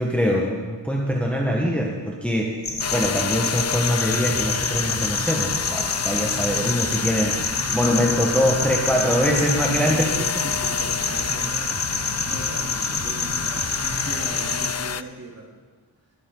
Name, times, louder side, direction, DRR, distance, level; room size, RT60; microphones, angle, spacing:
voice 1, 0.0-2.6 2.9-7.4 7.7-10.1, equal, 5° left, -2 dB, 1.4 m, -23 dB
sound 1, 2.6-14.7, left 3 dB, 60° left, 1.6 m, -27 dB
sound 2, 2.8-15.0, left 7 dB, 40° left, 0.4 m, -30 dB
Bass guitar, 4.3-14.2, right 3 dB, 20° right, 0.9 m, -39 dB
voice 2, 7.7-8.5 9.0-9.2 9.8-15.5, right 2 dB, 35° right, -3 dB, 3.1 m, -38 dB
21.5 x 7.8 x 3.9 m, 1.4 s
wide cardioid pair, 85°, 43 cm